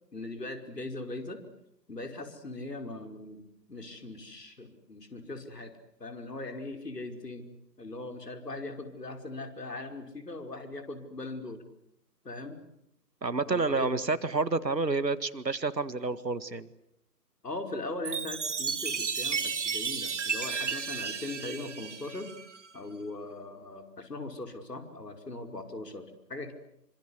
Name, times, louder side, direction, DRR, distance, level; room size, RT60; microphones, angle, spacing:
voice 1, 0.1-1.4 1.9-3.4 3.7-5.7 6.0-11.6 12.2-12.6 13.5-13.9 17.4-22.3 22.7-26.5, left 2 dB, 70° left, 6 dB, 5.4 m, -40 dB
voice 2, 13.2-16.7, right 3 dB, 75° right, 14 dB, 2.0 m, -29 dB
Chime, 18.0-22.7, right 5 dB, 45° right, 2.1 m, -33 dB
27.0 x 25.5 x 8.2 m, 0.77 s
figure-of-eight pair, 150°, 50 cm